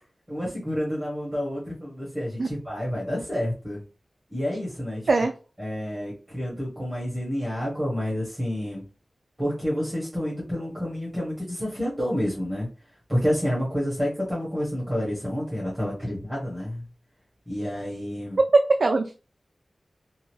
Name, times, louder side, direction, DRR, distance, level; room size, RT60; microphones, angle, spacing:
voice 1, 0.3-3.8 4.3-5.0 5.6-8.8 9.4-12.7 13.1-16.8 17.5-18.4, equal, 15° right, -5 dB, 1.1 m, -29 dB
voice 2, 18.5-19.1, right 3 dB, 75° right, 4 dB, 0.3 m, -20 dB
2.7 x 2.4 x 3.0 m, 0.34 s
wide cardioid pair, 70°, 0 cm